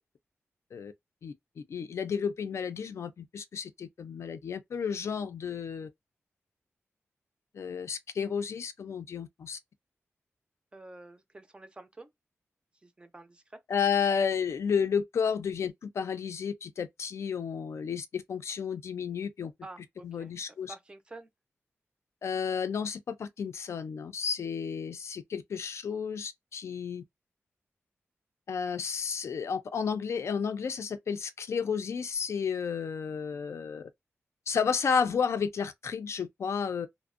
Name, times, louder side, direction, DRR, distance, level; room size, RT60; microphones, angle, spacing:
voice 1, 1.2-5.9 7.5-9.6 13.7-19.5 20.0-20.7 22.2-27.0 28.5-33.9 34.5-36.9, left 6 dB, 65° left, 0.4 m, -32 dB
voice 2, 10.7-12.1 12.8-13.6 19.6-20.3 20.7-21.3, right 2 dB, 20° right, 0.4 m, -48 dB
2.5 x 2.0 x 2.4 m
wide cardioid pair, 170°, 5 cm